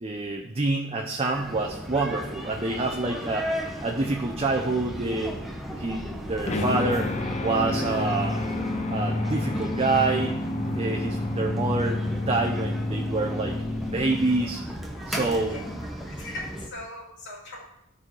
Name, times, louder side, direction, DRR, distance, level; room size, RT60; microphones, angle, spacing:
voice 1, 0.0-5.4 5.7-8.4 8.9-13.6 13.9-14.6 15.1-15.7, right 3 dB, 30° right, 2 dB, 0.7 m, -27 dB
sound 1, 1.3-16.7, equal, ahead, 1.0 m, -36 dB
sound 2, 6.5-14.7, left 2 dB, 35° left, 0.8 m, -29 dB
voice 2, 15.3-17.6, left 1 dB, 60° left, -2 dB, 2.6 m, -40 dB
12.5 x 5.6 x 4.7 m, 0.86 s
head